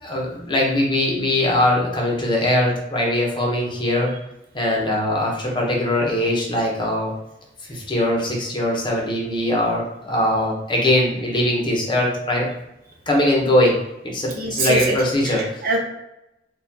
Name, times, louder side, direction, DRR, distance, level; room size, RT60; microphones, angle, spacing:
voice 1, 0.0-4.1 4.5-7.1 7.7-12.5 13.1-15.6, left 1 dB, 25° left, -2 dB, 0.8 m, -21 dB
voice 2, 14.3-14.9 15.2-15.8, right 2 dB, 55° right, -1 dB, 0.7 m, -24 dB
4.2 x 2.4 x 2.7 m, 0.89 s
head